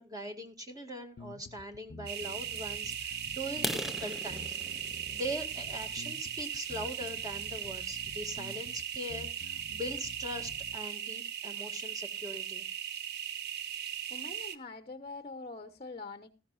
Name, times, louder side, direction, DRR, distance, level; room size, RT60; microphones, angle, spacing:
voice 1, 0.0-4.7 5.1-12.7, equal, 20° right, 4 dB, 2.0 m, -41 dB
sound 1, 1.2-10.8, left 3 dB, 55° left, 0.6 m, -50 dB
sound 2, 2.1-14.6, right 9 dB, 55° right, 1.1 m, -38 dB
sound 3, 3.5-7.3 7.8-8.0 8.5-8.6 9.0-9.2 9.5-9.6 10.0-10.1 10.3-10.8, equal, ahead, 0.5 m, -41 dB
voice 2, 14.1-16.3, left 3 dB, 30° left, 9 dB, 1.0 m, -44 dB
18.0 x 14.5 x 2.5 m, 0.31 s
head